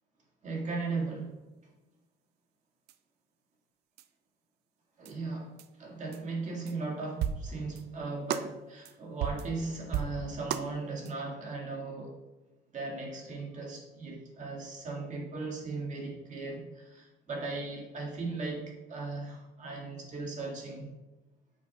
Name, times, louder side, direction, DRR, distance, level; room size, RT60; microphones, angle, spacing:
voice 1, 0.4-1.4 5.0-12.2 12.7-20.9, right 3 dB, 45° right, -1 dB, 1.9 m, -37 dB
sound 1, 2.9-3.0 4.0-4.1 5.0-5.1 5.6-5.7 6.1-6.2 6.7-6.8 7.2-7.8 8.3-8.6 8.8-8.9 9.2-9.6 9.9-10.7 11.1-11.2, right 9 dB, 75° right, 0.4 m, -34 dB
9.1 x 6.3 x 2.3 m, 1.0 s
cardioid pair, 110°, 17 cm